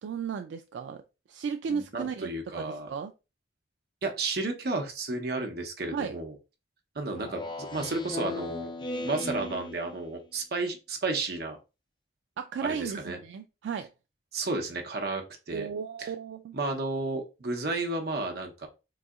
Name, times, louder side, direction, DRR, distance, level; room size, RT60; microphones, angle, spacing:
voice 1, 0.0-1.0 1.3-3.1 5.9-6.2 12.4-13.9 15.5-16.6, right 6 dB, 80° right, 0.3 m, -35 dB
voice 2, 1.7-2.9 4.0-6.3 6.9-8.7 9.0-11.6 12.6-13.2 14.3-15.7 16.0-16.1 16.5-18.7, right 3 dB, 60° right, 0.8 m, -32 dB
Speech synthesizer, 7.2-10.2, left 2 dB, 25° left, 0.5 m, -37 dB
3.9 x 2.7 x 2.3 m
head